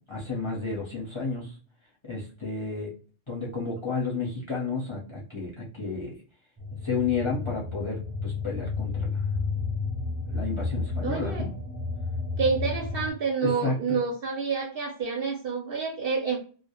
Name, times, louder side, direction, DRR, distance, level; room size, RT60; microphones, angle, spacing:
voice 1, 0.1-1.6 2.0-2.9 3.3-6.2 6.8-9.2 10.3-11.5 13.4-14.0, left 4 dB, 30° left, -3 dB, 0.7 m, -31 dB
sound 1, 6.6-13.1, left 4 dB, 15° right, 0.5 m, -31 dB
voice 2, 11.0-11.5 12.4-16.4, right 5 dB, 60° right, 1 dB, 0.6 m, -28 dB
2.2 x 2.0 x 2.8 m, 0.39 s
omnidirectional pair, 1.2 m